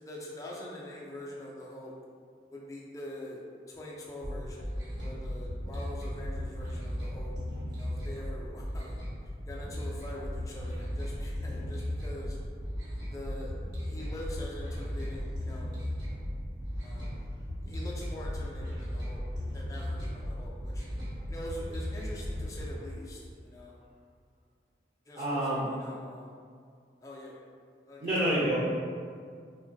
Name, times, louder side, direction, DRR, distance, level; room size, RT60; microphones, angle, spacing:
voice 1, 0.1-1.9 2.5-3.4 3.7-7.3 7.7-9.0 9.5-12.4 13.1-13.5 13.8-15.8 16.8-17.2 17.6-19.2 19.5-20.8 21.3-23.8 25.1-26.4 27.0-27.3 27.9-28.0, left 1 dB, 20° left, -4 dB, 0.3 m, -44 dB
sound 1, 4.2-22.7, equal, 70° right, 1.0 m, -36 dB
voice 2, 25.1-25.7 28.0-28.5, right 1 dB, 35° right, -12 dB, 0.6 m, -28 dB
3.0 x 2.2 x 2.6 m, 2.1 s
head